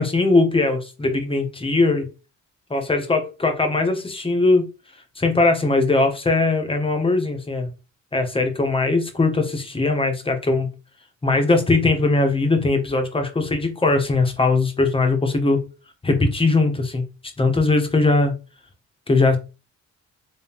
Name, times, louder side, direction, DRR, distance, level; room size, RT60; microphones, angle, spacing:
voice 1, 0.0-2.1 2.7-4.7 5.2-7.7 8.1-10.7 11.2-15.6 16.0-17.0 17.4-18.3 19.1-19.4, left 3 dB, 20° left, 1.1 m, -20 dB
3.7 x 3.1 x 2.9 m
cardioid pair, 90°, 30 cm